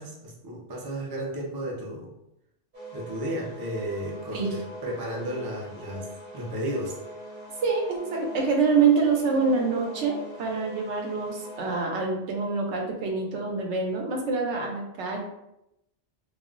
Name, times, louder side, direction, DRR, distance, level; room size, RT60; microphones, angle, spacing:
voice 1, 0.0-2.1 2.9-7.0, right 1 dB, 30° right, -3 dB, 0.4 m, -33 dB
sound 1, 2.7-11.8, equal, 55° right, 0.9 m, -43 dB
voice 2, 7.6-15.2, right 4 dB, 85° right, 1 dB, 0.9 m, -26 dB
2.4 x 2.0 x 3.6 m, 0.83 s
omnidirectional pair, 1.1 m